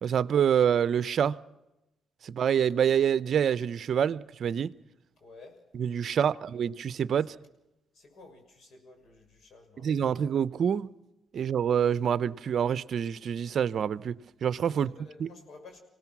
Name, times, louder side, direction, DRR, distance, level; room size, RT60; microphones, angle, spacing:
voice 1, 0.0-1.4 2.2-4.7 5.7-7.4 9.8-10.9 11.3-14.2 14.4-14.9 15.2-15.3, right 8 dB, 60° right, 0.7 m, -26 dB
voice 2, 5.2-5.6 6.3-6.4 7.9-10.0 14.7-15.8, left 3 dB, 55° left, 6.4 m, -52 dB
25.5 x 17.5 x 6.1 m
cardioid pair, 90°, 0 cm